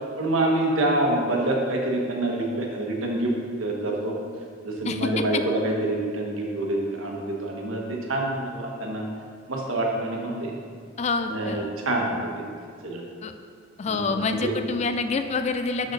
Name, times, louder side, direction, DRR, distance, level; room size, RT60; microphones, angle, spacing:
voice 1, 0.2-3.3 3.6-4.2 4.6-9.0 9.5-10.5 11.3-12.4 12.8-13.0 13.8-14.5 15.8-15.9, right 1 dB, 85° right, -1 dB, 1.3 m, -26 dB
voice 2, 11.0-11.7 13.2-13.3 13.8-15.9, left 4 dB, 30° left, 8 dB, 0.3 m, -27 dB
12.0 x 4.2 x 3.9 m, 2.1 s
head